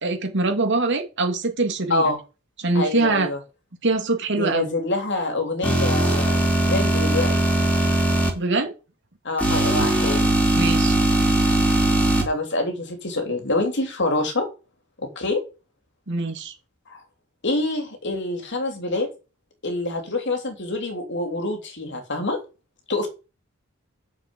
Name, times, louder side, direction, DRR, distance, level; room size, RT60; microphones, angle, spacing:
voice 1, 0.0-2.1 2.6-3.3 3.8-4.7 8.3-8.7 10.5-11.0 16.1-16.5, right 3 dB, 60° right, 2.6 m, -23 dB
voice 2, 2.7-3.4 4.4-7.4 9.2-10.3 12.2-14.5 15.0-15.4 16.9-17.0 17.4-19.1 19.6-22.4 22.9-23.1, left 2 dB, 60° left, 3.3 m, -26 dB
sound 1, 5.6-8.3 9.4-12.2, right 1 dB, 5° left, 4.4 m, -20 dB
7.4 x 7.2 x 7.9 m
head